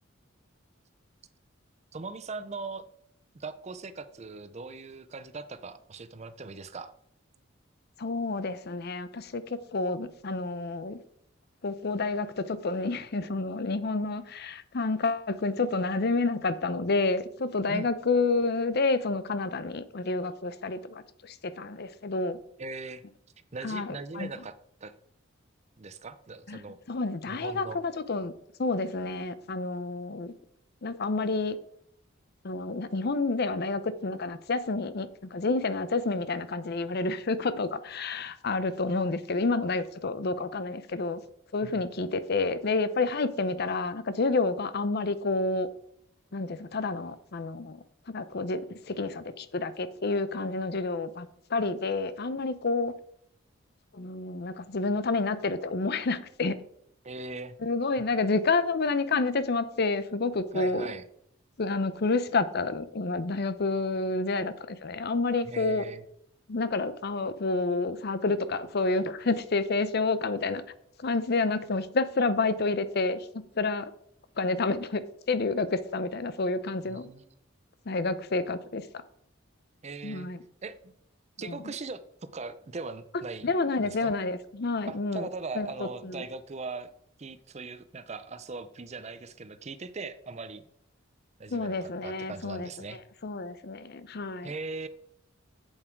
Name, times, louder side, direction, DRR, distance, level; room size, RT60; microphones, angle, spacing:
voice 1, 1.9-2.8 3.3-6.9 17.7-17.9 22.6-23.0 23.5-24.5 24.8-24.9 25.8-26.8 27.3-27.8 41.6-41.8 57.0-57.6 60.5-61.0 65.5-66.0 76.9-77.3 79.8-80.3 80.6-80.9 81.4-83.5 83.8-84.1 84.9-86.9 87.2-90.6 91.4-93.0 94.4-94.9, right 3 dB, 35° right, 13 dB, 0.6 m, -40 dB
voice 2, 8.0-11.0 11.6-22.4 23.6-24.3 26.5-26.6 26.9-28.3 28.6-30.3 30.8-31.6 32.4-41.2 41.5-45.7 46.3-52.9 53.9-56.6 57.6-60.9 61.6-65.8 66.5-70.6 71.0-73.9 74.4-77.1 77.9-78.9 80.0-80.4 81.5-81.7 83.4-85.3 85.5-86.2 91.5-92.7 93.2-94.5, left 3 dB, 55° left, 14 dB, 0.6 m, -29 dB
8.1 x 7.3 x 4.6 m, 0.70 s
head